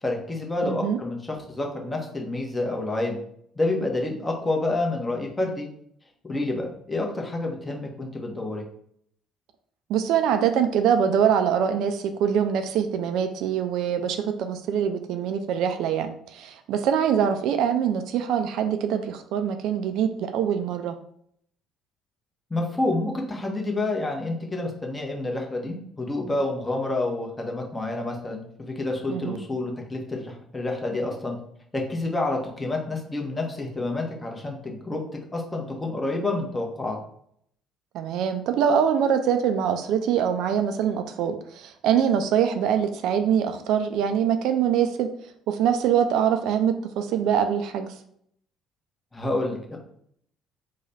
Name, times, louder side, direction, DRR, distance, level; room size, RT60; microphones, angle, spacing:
voice 1, 0.0-3.2 3.6-5.7 6.2-8.6 22.5-31.4 31.7-35.0 35.3-37.0 49.1-49.8, left 2 dB, 20° left, 1 dB, 1.0 m, -28 dB
voice 2, 0.6-1.0 9.9-20.9 29.1-29.4 37.9-45.1 45.5-47.9, right 8 dB, 60° right, 8 dB, 0.3 m, -24 dB
3.0 x 2.2 x 4.0 m, 0.67 s
figure-of-eight pair, 50°, 0 cm